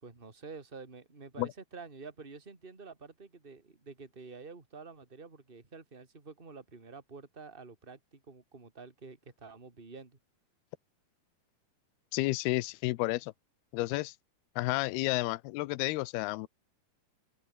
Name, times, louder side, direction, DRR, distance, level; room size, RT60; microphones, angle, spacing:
voice 1, 0.0-10.2, right 4 dB, 15° right, 2.9 m, -49 dB
voice 2, 12.1-13.3 13.7-14.1 14.6-16.5, left 20 dB, 85° left, 2.7 m, -31 dB
omnidirectional pair, 4.6 m